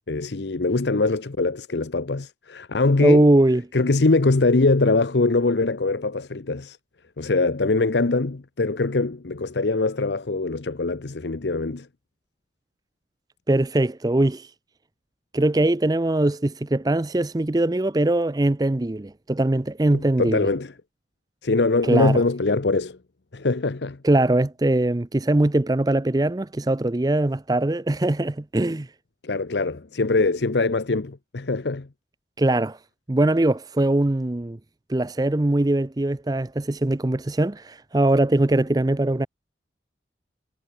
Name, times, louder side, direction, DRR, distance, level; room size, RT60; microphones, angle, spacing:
voice 1, 0.1-3.3 3.7-6.8 7.2-11.9 19.9-20.7 21.4-23.0 23.3-24.0 29.2-31.9, left 3 dB, 70° left, 0.8 m, -22 dB
voice 2, 3.0-3.6 13.5-14.5 15.3-20.5 21.9-22.2 24.0-28.9 32.4-32.8 33.1-34.6 34.9-39.3, right 1 dB, 20° right, 0.5 m, -21 dB
head